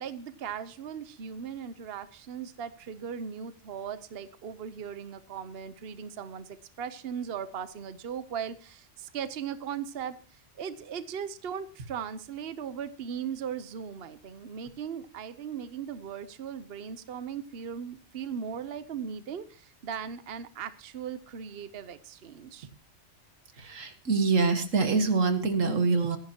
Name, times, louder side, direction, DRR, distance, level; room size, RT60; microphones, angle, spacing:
voice 1, 0.0-22.7, right 7 dB, 55° right, 12 dB, 1.0 m, -38 dB
voice 2, 23.6-26.2, right 4 dB, 90° right, 7 dB, 2.0 m, -25 dB
24.5 x 11.0 x 2.9 m, 0.37 s
omnidirectional pair, 1.3 m